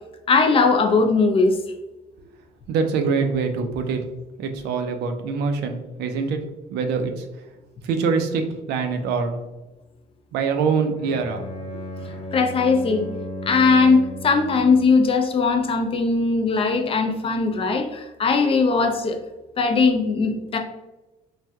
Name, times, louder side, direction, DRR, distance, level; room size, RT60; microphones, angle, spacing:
voice 1, 0.3-1.6 12.3-13.1 13.4-19.2 19.6-20.6, left 4 dB, 35° left, 5 dB, 0.4 m, -19 dB
voice 2, 2.7-4.0 4.4-6.4 6.7-7.3 7.8-9.4 10.3-11.4, right 5 dB, 75° right, 6 dB, 0.5 m, -24 dB
Bowed string instrument, 11.0-15.0, left 1 dB, 80° left, 1.0 m, -35 dB
3.2 x 2.6 x 2.2 m, 1.0 s
cardioid pair, 110°, 17 cm